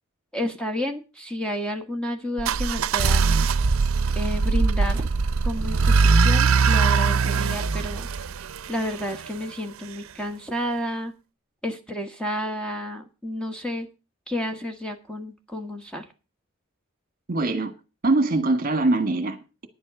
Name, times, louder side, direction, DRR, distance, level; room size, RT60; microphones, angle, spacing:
voice 1, 0.3-3.5 4.1-5.0 5.4-8.1 8.7-11.1 11.6-13.9 14.3-16.0, left 1 dB, 5° left, 1.5 m, -31 dB
sound 1, 2.4-9.3, right 4 dB, 85° right, 0.5 m, -21 dB
voice 2, 17.3-17.7 18.0-19.7, right 2 dB, 45° right, 1.6 m, -23 dB
10.5 x 7.7 x 6.6 m
head